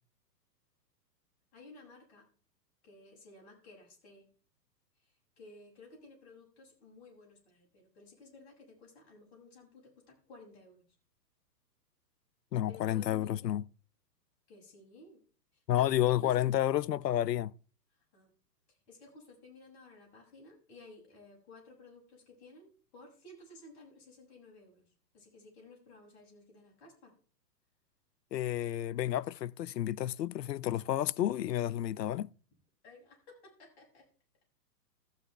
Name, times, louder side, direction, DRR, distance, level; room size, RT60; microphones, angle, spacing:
voice 1, 1.5-2.3 2.8-4.3 5.0-10.8 12.7-13.5 14.5-15.2 15.5-16.5 17.9-18.3 18.7-27.1 32.8-34.1, left 2 dB, 40° left, 7.3 m, -55 dB
voice 2, 12.5-13.6 15.7-17.5 28.3-32.3, left 12 dB, 80° left, 0.6 m, -30 dB
15.0 x 13.0 x 3.4 m
hypercardioid pair, 125°, 49 cm